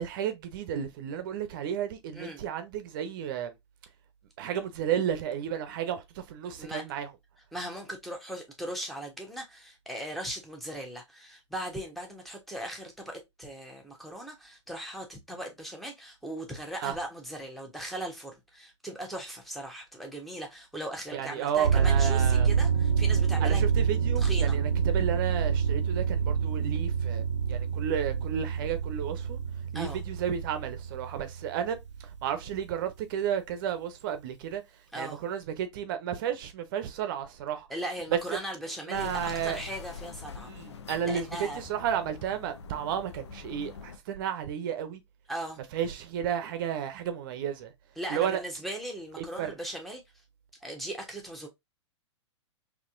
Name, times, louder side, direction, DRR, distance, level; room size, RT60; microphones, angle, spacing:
voice 1, 0.0-3.5 4.4-7.1 16.8-16.9 21.1-22.5 23.4-29.4 29.7-31.8 32.2-34.6 35.0-37.7 38.3-38.4 38.9-39.6 40.5-45.0 45.7-47.7 48.1-48.4 49.2-49.5, right 9 dB, 45° right, 0.8 m, -32 dB
voice 2, 2.1-2.4 6.6-6.9 7.5-23.6 24.2-24.6 29.7-30.0 34.9-35.2 37.7-40.5 41.1-41.6 45.3-45.6 48.0-50.0 50.6-51.5, right 1 dB, ahead, 1.1 m, -38 dB
sound 1, 21.6-32.4, right 6 dB, 80° right, 0.5 m, -27 dB
sound 2, 38.9-44.0, left 6 dB, 70° left, 0.6 m, -44 dB
4.1 x 2.9 x 2.5 m
figure-of-eight pair, 105°, 15 cm